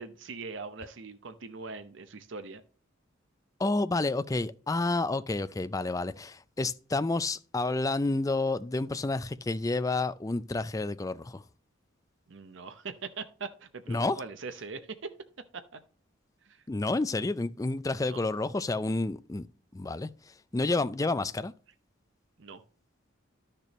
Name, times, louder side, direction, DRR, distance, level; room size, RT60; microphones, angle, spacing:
voice 1, 0.0-2.6 12.3-15.1 15.5-15.8 16.4-16.6 18.0-18.2 22.4-22.6, right 4 dB, 65° right, 0.7 m, -41 dB
voice 2, 3.6-11.4 13.9-14.2 16.7-19.5 19.7-20.1 20.5-21.5, left 2 dB, 15° left, 0.4 m, -29 dB
12.0 x 6.7 x 3.0 m
head